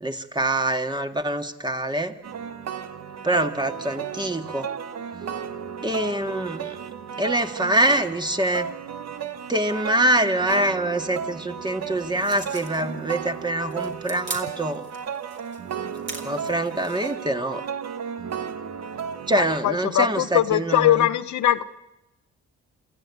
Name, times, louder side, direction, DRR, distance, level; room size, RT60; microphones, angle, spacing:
voice 1, 0.0-2.1 3.2-4.7 5.8-6.9 7.2-8.7 9.5-14.9 16.2-17.6 19.3-21.1, right 1 dB, 15° right, 6 dB, 2.0 m, -25 dB
sound 1, 2.2-19.6, right 7 dB, 60° right, 1.6 m, -34 dB
sound 2, 12.2-17.2, right 3 dB, 40° right, 4.3 m, -40 dB
voice 2, 19.3-21.6, left 12 dB, 75° left, 11 dB, 1.0 m, -21 dB
27.0 x 15.0 x 9.6 m, 0.94 s
cardioid pair, 70°, 29 cm